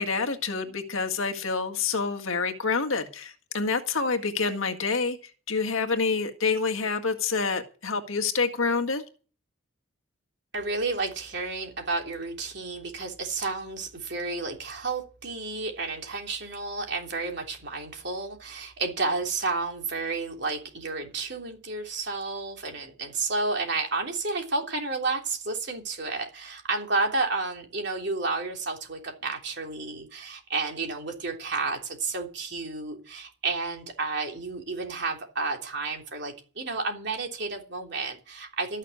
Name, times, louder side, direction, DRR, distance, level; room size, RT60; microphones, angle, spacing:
voice 1, 0.0-9.0, left 4 dB, 75° left, 5 dB, 1.8 m, -27 dB
voice 2, 10.5-38.8, right 3 dB, 55° right, 2 dB, 3.3 m, -31 dB
13.5 x 6.6 x 9.7 m, 0.36 s
head